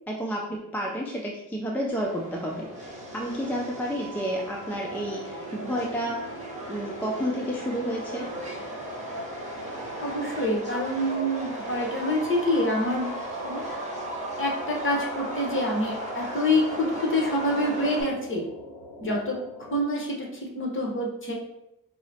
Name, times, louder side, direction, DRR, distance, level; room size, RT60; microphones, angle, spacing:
voice 1, 0.1-6.3 6.7-8.3, equal, 5° left, -2 dB, 0.4 m, -31 dB
Subway metro underground, 1.9-18.0, right 1 dB, 20° right, 1.0 m, -36 dB
sound 1, 2.4-19.8, equal, 60° left, 1.0 m, -45 dB
voice 2, 10.0-13.1 13.4-13.6 14.4-18.4 19.0-19.4 19.7-20.3 20.5-21.3, left 1 dB, 35° left, -2 dB, 1.1 m, -26 dB
4.7 x 2.0 x 2.8 m, 0.87 s
cardioid pair, 90°, 35 cm